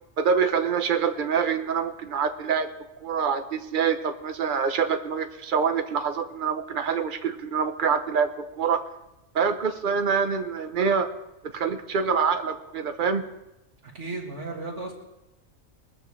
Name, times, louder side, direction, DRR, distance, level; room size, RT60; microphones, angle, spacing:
voice 1, 0.2-2.7 3.0-8.8 9.3-11.1 11.5-13.2, right 6 dB, 40° right, 7 dB, 1.0 m, -25 dB
voice 2, 13.9-14.9, right 3 dB, 60° right, -1 dB, 2.7 m, -34 dB
22.0 x 13.5 x 3.3 m, 0.94 s
omnidirectional pair, 1.4 m